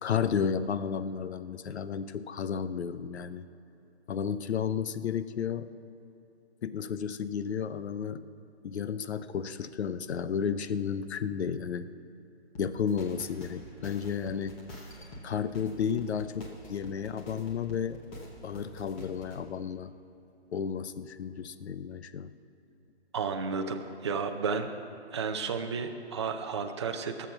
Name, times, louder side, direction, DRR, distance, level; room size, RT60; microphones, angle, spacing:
voice 1, 0.0-3.4 4.1-5.7 6.6-8.2 8.6-11.9 12.6-14.6 15.2-18.0 18.4-20.0 20.5-22.3, left 7 dB, 70° left, 13 dB, 0.7 m, -32 dB
sound 1, 12.5-19.4, equal, 10° left, 0.9 m, -46 dB
voice 2, 23.1-24.7 25.1-27.3, right 5 dB, 25° right, 5 dB, 0.5 m, -32 dB
19.0 x 7.1 x 5.9 m, 2.9 s
hypercardioid pair, 165°, 34 cm